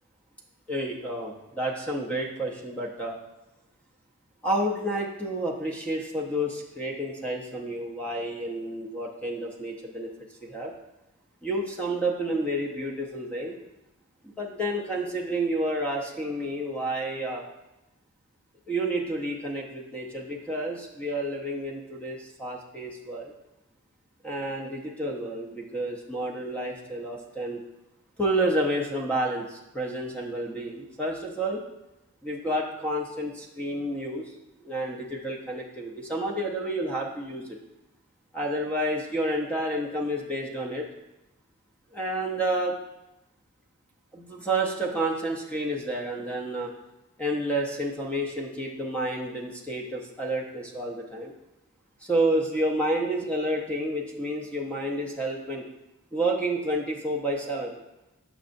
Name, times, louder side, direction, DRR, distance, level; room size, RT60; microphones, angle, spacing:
voice 1, 0.7-3.2 4.4-10.1 10.4-10.7 11.4-13.6 14.2-17.4 18.7-23.3 24.2-27.6 28.2-31.6 32.2-34.3 34.6-37.6 38.3-40.9 41.9-42.8 44.1-46.7 47.2-51.3 52.0-55.6 56.1-57.7, right 1 dB, 5° left, -1 dB, 0.6 m, -30 dB
6.5 x 6.1 x 2.6 m, 0.95 s
head